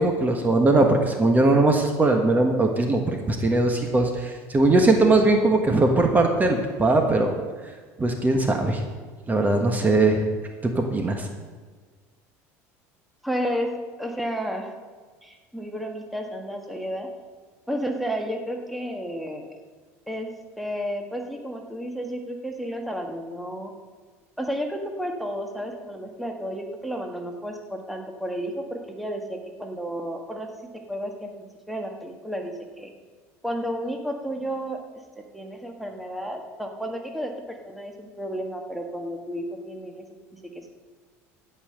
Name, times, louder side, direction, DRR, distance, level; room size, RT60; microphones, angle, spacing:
voice 1, 0.0-7.3 8.0-8.8 9.3-10.2 10.6-11.3, right 2 dB, 20° right, 4 dB, 1.4 m, -20 dB
voice 2, 13.2-13.7 14.0-14.8 15.2-17.1 17.7-19.5 20.1-20.3 20.6-23.7 24.4-30.5 30.9-32.9 33.4-34.8 35.3-40.0 40.5-40.7, equal, ahead, 2 dB, 1.5 m, -32 dB
15.0 x 5.7 x 6.7 m, 1.5 s
supercardioid pair, 100°, 7 cm